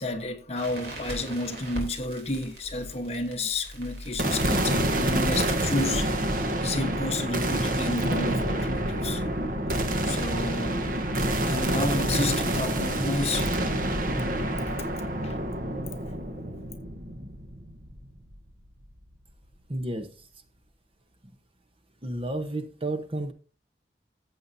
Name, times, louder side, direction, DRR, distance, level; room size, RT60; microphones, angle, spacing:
voice 1, 0.0-9.2 10.0-10.9 11.5-13.6 14.7-14.9 15.2-15.4, left 2 dB, 35° left, 1.2 m, -31 dB
Crackle, 0.6-6.3, equal, 70° right, 3.3 m, -40 dB
sound 1, 4.2-18.5, right 1 dB, 50° right, 1.2 m, -27 dB
voice 2, 19.7-20.1 22.0-23.3, right 2 dB, 30° right, 1.0 m, -31 dB
14.5 x 7.7 x 2.7 m
head